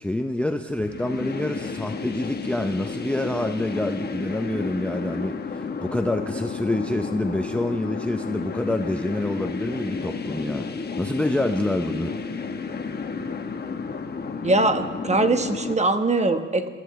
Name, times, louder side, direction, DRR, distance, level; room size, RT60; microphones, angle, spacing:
voice 1, 0.0-12.2, left 1 dB, 5° left, 6 dB, 0.6 m, -27 dB
sound 1, 0.8-15.7, left 5 dB, 35° left, 1.1 m, -32 dB
voice 2, 14.4-16.7, right 2 dB, 20° right, 8 dB, 1.1 m, -22 dB
25.0 x 14.5 x 3.2 m, 1.5 s
cardioid pair, 90°, 30 cm